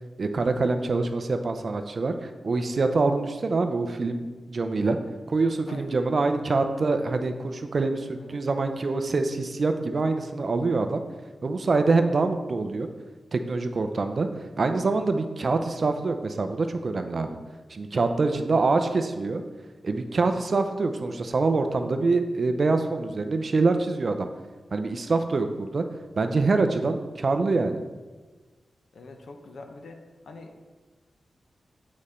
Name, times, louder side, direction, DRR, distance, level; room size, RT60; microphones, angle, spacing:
voice 1, 0.2-5.0 5.3-11.0 11.4-12.9 13.3-14.3 14.6-17.4 17.7-19.4 19.8-24.3 24.7-25.8 26.2-27.8, right 3 dB, 45° right, 7 dB, 0.5 m, -25 dB
voice 2, 5.7-6.0 6.7-6.9 8.2-9.0 18.2-18.7 20.1-20.3 28.9-30.6, left 3 dB, 70° left, 4 dB, 0.9 m, -45 dB
8.7 x 4.2 x 5.0 m, 1.3 s
wide cardioid pair, 160°, 0 cm